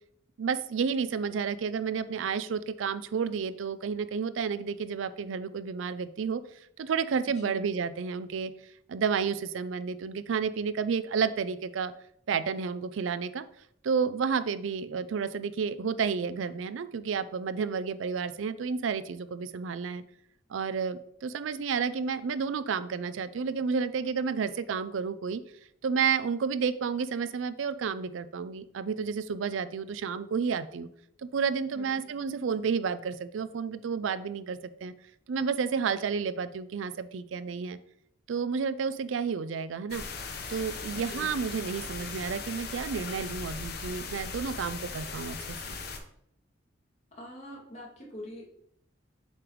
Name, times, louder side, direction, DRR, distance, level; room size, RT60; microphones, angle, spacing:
voice 1, 0.4-11.9 12.3-13.4 13.8-20.0 20.5-25.4 25.8-30.9 31.2-34.9 35.3-37.8 38.3-40.0 40.5-45.8, right 6 dB, 90° right, 14 dB, 0.4 m, -31 dB
voice 2, 7.2-7.6 31.7-32.1 40.9-41.4 47.1-48.4, left 1 dB, 35° left, -4 dB, 2.1 m, -44 dB
sound 1, 39.9-46.0, left 4 dB, 55° left, 0.9 m, -38 dB
7.2 x 3.4 x 4.6 m, 0.70 s
head